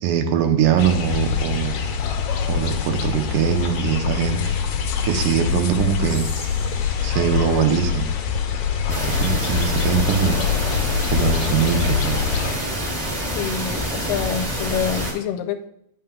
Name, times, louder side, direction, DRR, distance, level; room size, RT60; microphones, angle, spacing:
voice 1, 0.0-1.8 2.5-4.6 5.0-6.3 7.0-8.1 8.9-10.4 11.1-12.3, right 8 dB, 80° right, 5 dB, 2.2 m, -22 dB
sound 1, 0.8-12.5, left 7 dB, 75° left, 1.9 m, -24 dB
Whispering, 6.0-9.2, left 2 dB, 50° left, 0.9 m, -43 dB
sound 2, 8.9-15.1, equal, 35° right, 0.6 m, -26 dB
voice 2, 13.3-15.7, left 8 dB, 90° left, 9 dB, 2.2 m, -26 dB
9.6 x 5.7 x 3.7 m, 0.78 s
omnidirectional pair, 3.8 m